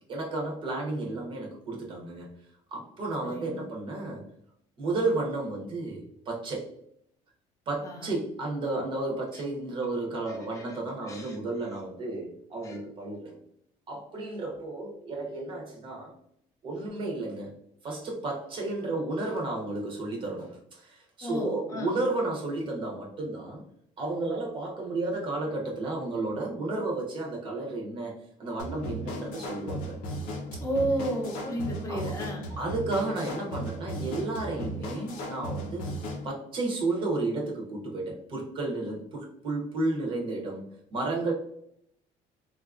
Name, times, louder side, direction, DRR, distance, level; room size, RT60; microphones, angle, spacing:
voice 1, 0.1-2.3 2.7-4.3 4.8-6.7 7.7-13.4 13.9-16.1 16.6-17.6 17.8-23.6 24.0-28.1 28.4-29.9 31.9-32.1 32.6-36.0 36.2-41.3, right 2 dB, 35° right, -1 dB, 0.7 m, -32 dB
voice 2, 3.2-3.6 7.8-8.1 9.3-9.4 10.3-10.8 11.0-11.4 12.6-12.8 21.2-22.0 30.6-32.6, right 1 dB, 20° left, 1 dB, 0.7 m, -33 dB
sound 1, 28.6-36.3, equal, 80° left, 0.7 m, -36 dB
3.8 x 2.3 x 2.4 m, 0.72 s
cardioid pair, 165°, 14 cm